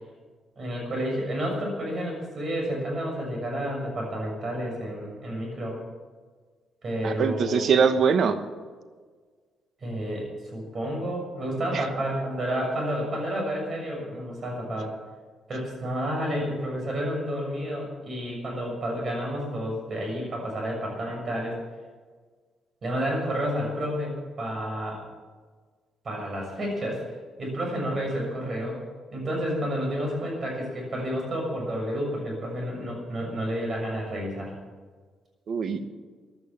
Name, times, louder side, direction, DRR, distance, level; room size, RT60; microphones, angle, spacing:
voice 1, 0.6-5.8 6.8-7.7 9.8-14.9 15.5-21.6 22.8-25.0 26.0-27.0 27.4-28.8 29.1-34.5, equal, 40° right, 0 dB, 6.4 m, -30 dB
voice 2, 7.0-8.4 11.7-11.8 35.5-35.9, right 6 dB, 60° right, 10 dB, 1.2 m, -23 dB
15.5 x 11.0 x 7.2 m, 1.5 s
cardioid pair, 110°, 0 cm